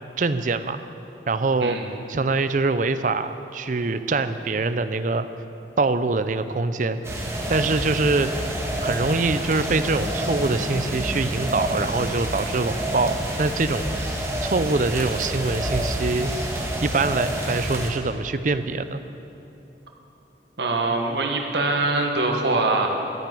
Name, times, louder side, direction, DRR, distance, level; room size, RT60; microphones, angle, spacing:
voice 1, 0.2-0.8 1.3-1.8 2.1-5.3 5.8-7.0 7.5-8.3 8.8-13.9 14.4-16.3 16.8-19.0, right 3 dB, 45° right, 11 dB, 0.5 m, -24 dB
sound 1, 7.0-17.9, right 1 dB, 15° right, 1.6 m, -28 dB
voice 2, 20.6-22.9, right 2 dB, 75° right, 2 dB, 1.5 m, -23 dB
12.5 x 9.7 x 7.7 m, 2.9 s
head